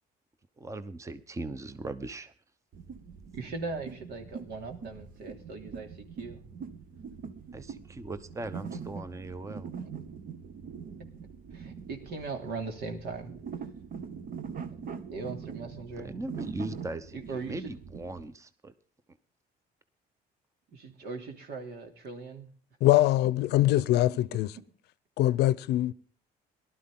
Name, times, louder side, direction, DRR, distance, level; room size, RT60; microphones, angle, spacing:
voice 1, 0.6-2.3 7.5-9.7 16.0-17.2 17.5-18.7, right 2 dB, 20° right, 0.9 m, -39 dB
sound 1, 2.7-18.2, right 6 dB, 55° right, 1.3 m, -43 dB
voice 2, 3.3-6.4 9.8-9.9 11.5-13.3 15.1-16.1 17.1-17.8 20.7-22.5 23.8-23.9 24.3-24.4, right 4 dB, 70° right, 3.1 m, -39 dB
voice 3, 22.8-24.5 25.2-25.9, left 15 dB, 75° left, 0.6 m, -23 dB
18.5 x 12.5 x 3.8 m
cardioid pair, 110°, 17 cm